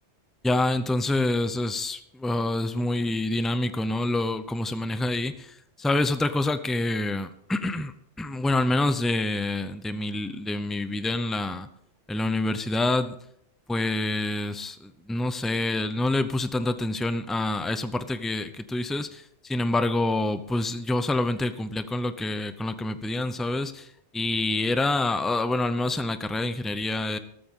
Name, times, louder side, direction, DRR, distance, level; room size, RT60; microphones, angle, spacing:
voice 1, 0.4-11.7 12.1-13.2 13.7-27.2, left 2 dB, ahead, 11 dB, 0.4 m, -27 dB
14.0 x 13.0 x 3.7 m, 0.73 s
omnidirectional pair, 1.2 m